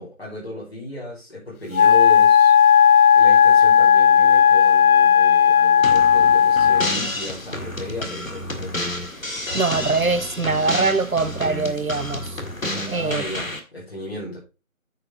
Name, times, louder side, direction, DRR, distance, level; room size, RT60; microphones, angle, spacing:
voice 1, 0.0-8.8 12.7-14.4, left 1 dB, 45° left, 5.0 m, -35 dB
Wind instrument woodwind instrument, 1.7-7.0, left 8 dB, 90° left, 0.6 m, -14 dB
sound 1, 5.8-13.6, left 1 dB, 65° left, 1.9 m, -30 dB
voice 2, 9.5-12.4 12.9-13.2, right 4 dB, 70° right, 1.0 m, -23 dB
9.4 x 6.8 x 3.7 m
figure-of-eight pair, 175°, 43 cm